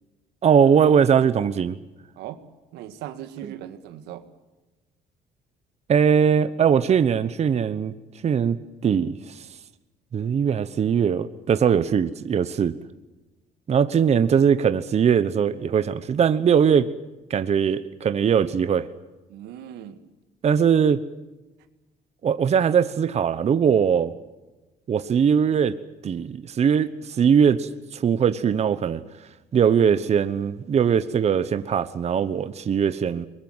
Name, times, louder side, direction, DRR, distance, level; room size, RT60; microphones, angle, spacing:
voice 1, 0.4-1.8 5.9-7.9 8.2-9.5 10.1-12.8 13.7-16.9 17.3-18.9 20.4-21.0 22.2-24.1 24.9-25.7 26.0-29.0 29.5-33.3, right 7 dB, 40° right, 12 dB, 1.0 m, -20 dB
voice 2, 2.7-4.2 19.3-20.0, right 11 dB, 90° right, 10 dB, 1.9 m, -38 dB
22.5 x 21.5 x 8.0 m, 1.1 s
cardioid pair, 110°, 17 cm